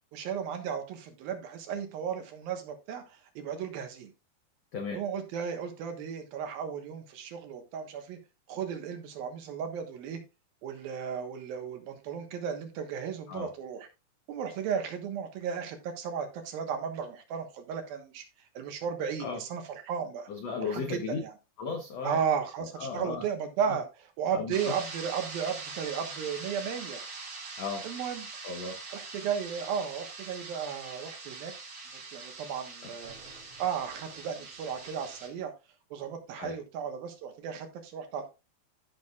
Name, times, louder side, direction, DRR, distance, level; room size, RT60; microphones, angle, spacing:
voice 1, 0.1-4.1 4.9-8.2 8.5-10.2 10.6-13.9 14.3-18.2 18.5-20.3 20.6-21.3 22.0-23.8 24.2-27.0 27.8-28.3 28.9-31.5 32.1-33.1 33.6-35.5 35.9-38.3, right 7 dB, 70° right, 3.0 m, -34 dB
voice 2, 20.3-21.2 21.6-22.2 22.6-23.2 23.7-23.8 24.3-24.7 27.6-27.8 28.4-28.8 36.4-36.5, left 4 dB, 75° left, 1.5 m, -35 dB
sound 1, 24.5-35.3, right 3 dB, 40° right, 2.4 m, -43 dB
14.0 x 6.3 x 2.4 m
omnidirectional pair, 4.5 m